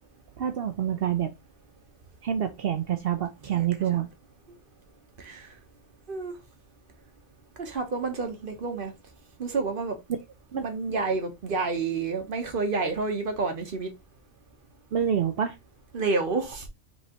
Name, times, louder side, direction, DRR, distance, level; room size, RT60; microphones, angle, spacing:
voice 1, 0.4-1.3 2.2-4.1 10.5-11.0 14.9-15.6, right 9 dB, 60° right, 0.6 m, -27 dB
voice 2, 5.2-5.5 6.1-6.3 7.6-8.9 9.4-10.0 10.6-13.9 15.9-16.6, right 4 dB, 45° right, 1.0 m, -29 dB
5.5 x 3.1 x 2.8 m
omnidirectional pair, 1.4 m